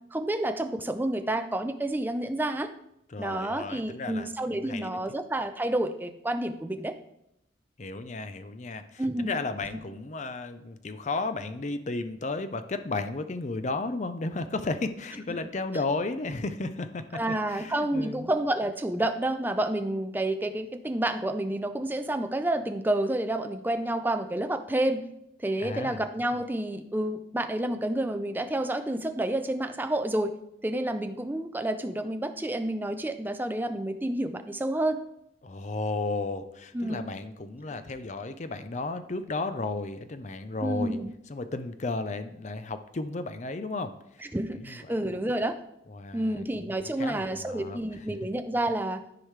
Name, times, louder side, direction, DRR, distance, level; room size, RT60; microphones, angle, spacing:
voice 1, 0.1-2.7 3.2-6.9 9.0-9.4 17.1-25.0 25.4-30.3 30.6-35.0 36.7-37.0 40.6-41.1 44.3-45.6 46.1-49.0, right 1 dB, 10° right, 7 dB, 0.4 m, -29 dB
voice 2, 3.1-4.9 7.8-17.2 17.5-18.3 25.6-26.0 35.4-41.0 41.3-45.0 45.9-48.0, left 3 dB, 40° left, 10 dB, 0.5 m, -34 dB
13.5 x 4.8 x 3.3 m, 0.81 s
head